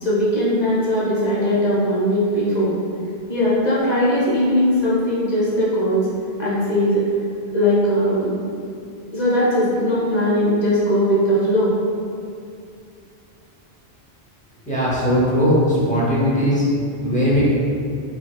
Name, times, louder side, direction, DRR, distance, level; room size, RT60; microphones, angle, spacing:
voice 1, 0.0-2.8 3.3-6.1 6.4-7.0 7.5-8.3 9.1-11.7, equal, 40° left, -8 dB, 1.0 m, -19 dB
voice 2, 14.7-16.6 17.0-17.5, equal, 10° left, -8 dB, 0.6 m, -18 dB
4.1 x 2.8 x 2.3 m, 2.4 s
omnidirectional pair, 1.1 m